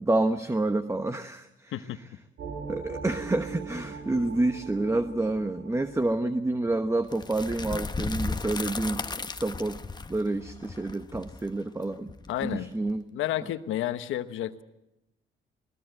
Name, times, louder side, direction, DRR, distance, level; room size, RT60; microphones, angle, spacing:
voice 1, 0.0-1.7 2.7-9.0 9.4-9.8 10.1-12.1 12.4-13.0, right 2 dB, 15° right, 9 dB, 1.1 m, -28 dB
sound 1, 2.4-7.7, right 5 dB, 65° right, 6.3 m, -41 dB
sound 2, 7.1-12.9, left 3 dB, 20° left, 1.0 m, -35 dB
voice 2, 12.3-12.7 13.1-14.6, left 12 dB, 85° left, 11 dB, 1.2 m, -31 dB
21.0 x 20.5 x 7.9 m, 0.89 s
cardioid pair, 90°, 20 cm